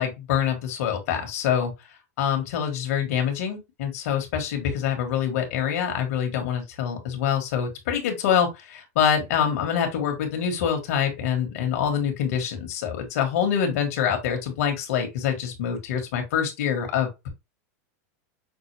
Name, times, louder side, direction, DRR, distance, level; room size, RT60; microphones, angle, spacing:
voice 1, 0.0-1.7 2.2-17.3, left 8 dB, 70° left, 1.7 m, -25 dB
6.0 x 2.2 x 3.4 m
supercardioid pair, 130°, 8 cm